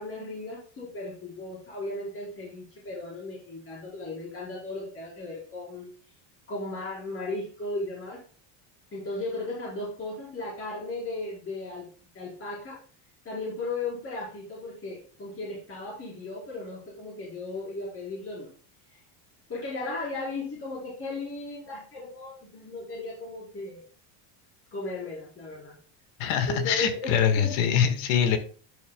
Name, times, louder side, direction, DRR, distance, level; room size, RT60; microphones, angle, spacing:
voice 1, 0.0-5.9 6.5-8.2 8.9-11.9 12.1-12.8 13.2-18.5 18.9-19.0 19.5-23.8 24.7-25.7 26.5-27.5, left 2 dB, 25° left, -6 dB, 5.0 m, -36 dB
voice 2, 26.2-28.4, left 8 dB, 70° left, 8 dB, 1.8 m, -24 dB
11.0 x 8.8 x 2.3 m, 0.41 s
cardioid pair, 135°, 48 cm